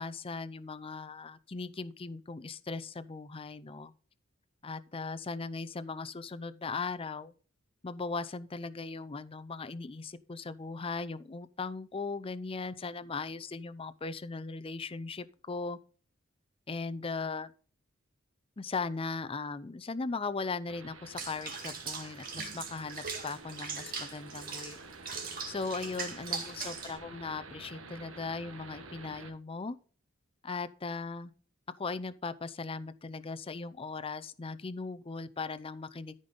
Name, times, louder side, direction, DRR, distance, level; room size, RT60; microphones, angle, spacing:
voice 1, 0.0-3.9 4.6-7.3 7.8-15.8 16.7-17.5 18.6-24.8 25.5-29.8 30.4-31.3 31.8-36.2, left 4 dB, 30° left, 0.5 m, -38 dB
sound 1, 20.7-29.3, right 3 dB, 80° right, 1.4 m, -50 dB
Water / Bathtub (filling or washing), 21.2-27.0, right 5 dB, 45° right, 1.9 m, -40 dB
13.0 x 5.2 x 3.9 m
head